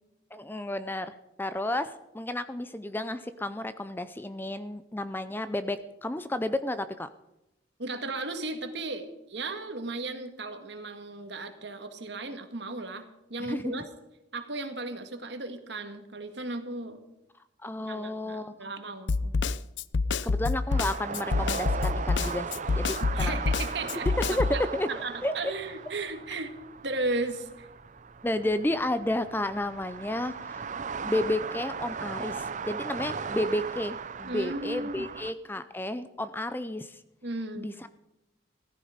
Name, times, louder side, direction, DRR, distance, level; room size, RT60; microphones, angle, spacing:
voice 1, 0.3-7.1 13.4-13.8 17.6-18.7 20.2-23.4 24.0-24.5 24.7-24.9 25.2-25.5 28.2-30.6 31.0-37.0 37.6-37.9, left 1 dB, 10° left, 12 dB, 0.5 m, -32 dB
voice 2, 7.8-13.9 14.3-17.0 17.9-19.3 23.1-24.1 24.4-24.6 24.9-26.5 26.8-27.7 34.2-35.1 37.2-37.8, right 2 dB, 60° right, 7 dB, 1.8 m, -35 dB
Snare drum, 19.1-24.6, left 4 dB, 70° left, 0.5 m, -27 dB
sound 1, 20.7-35.3, right 5 dB, 40° right, 0.6 m, -38 dB
16.0 x 14.5 x 5.1 m, 0.90 s
head